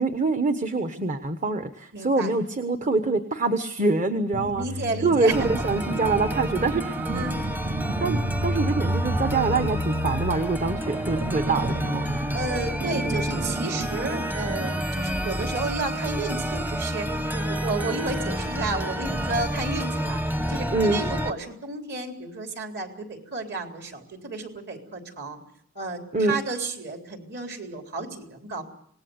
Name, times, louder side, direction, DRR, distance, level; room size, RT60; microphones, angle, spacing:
voice 1, 0.0-4.7 5.0-6.9 8.0-12.1 20.7-21.0 26.1-26.4, right 3 dB, 35° right, 8 dB, 1.2 m, -25 dB
voice 2, 1.9-2.3 4.6-5.3 7.1-7.4 12.3-20.2 20.5-25.4 25.7-28.6, right 3 dB, 55° right, 4 dB, 4.0 m, -32 dB
sound 1, 4.3-14.8, right 1 dB, 75° right, 1.3 m, -32 dB
sound 2, 5.3-21.3, equal, 10° right, 0.9 m, -29 dB
26.0 x 19.5 x 8.1 m, 0.65 s
head